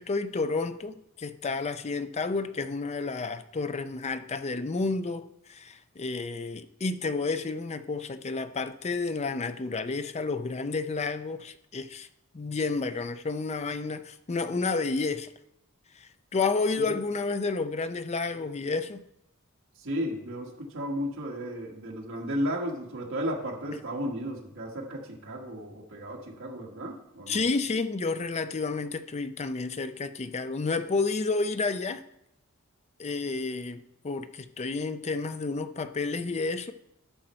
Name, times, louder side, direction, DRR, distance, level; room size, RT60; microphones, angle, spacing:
voice 1, 0.0-12.1 12.3-15.3 16.3-19.0 27.3-32.0 33.0-36.7, left 3 dB, 30° left, 0.5 m, -30 dB
voice 2, 19.7-27.4, equal, 65° right, 1.7 m, -34 dB
11.5 x 6.5 x 4.4 m
head